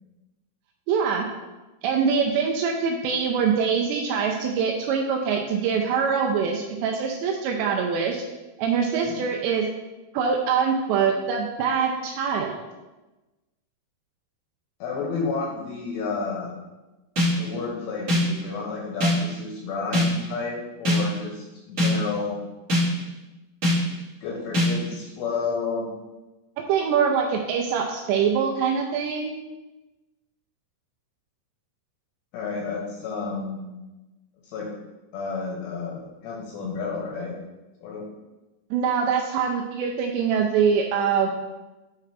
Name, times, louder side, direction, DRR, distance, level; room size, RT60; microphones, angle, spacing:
voice 1, 0.9-1.3 1.8-8.2 8.6-9.7 10.1-12.6 26.6-29.4 38.7-41.3, right 6 dB, 85° right, 1 dB, 2.5 m, -24 dB
voice 2, 14.8-16.5 17.4-22.4 24.2-25.9 32.3-33.7 34.4-34.7 35.1-37.3 37.8-38.1, left 4 dB, 75° left, -2 dB, 2.9 m, -31 dB
sound 1, 17.2-17.5 18.1-18.4 19.0-19.3 19.9-20.3 20.8-21.2 21.8-22.1 22.7-23.1 23.6-24.0 24.5-24.9, left 1 dB, 35° right, 1.7 m, -22 dB
8.4 x 4.8 x 3.3 m, 1.1 s
omnidirectional pair, 5.6 m